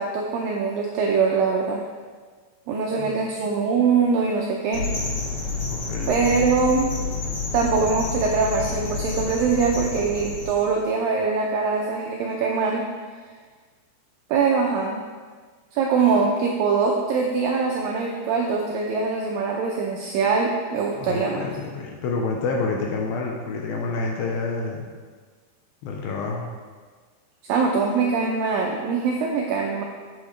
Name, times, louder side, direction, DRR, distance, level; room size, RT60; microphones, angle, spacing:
voice 1, 0.0-1.8 2.7-4.9 6.1-7.0 7.5-12.9 14.3-15.0 15.7-21.5 27.5-29.8, right 5 dB, 85° right, 0 dB, 2.0 m, -23 dB
sound 1, 4.7-10.6, left 4 dB, 60° left, 1.1 m, -29 dB
voice 2, 5.6-6.4 20.9-24.9 25.8-26.5, left 3 dB, 80° left, 0 dB, 2.3 m, -28 dB
8.4 x 7.8 x 3.2 m, 1.5 s
omnidirectional pair, 4.7 m